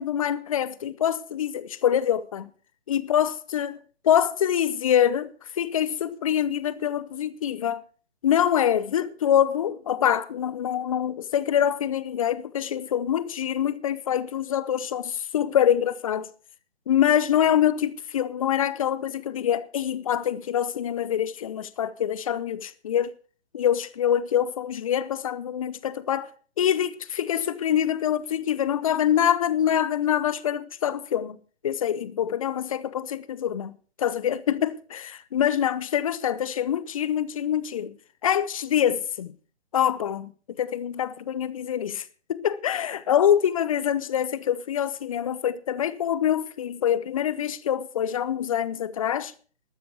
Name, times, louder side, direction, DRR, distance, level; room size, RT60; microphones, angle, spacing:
voice 1, 0.0-2.5 2.9-3.8 4.0-7.8 8.2-16.3 16.9-23.1 23.5-26.3 26.6-31.4 31.6-38.0 38.2-39.4 39.7-49.3, left 10 dB, 30° left, 0.7 m, -25 dB
13.0 x 13.0 x 4.5 m
hypercardioid pair, 150°, 34 cm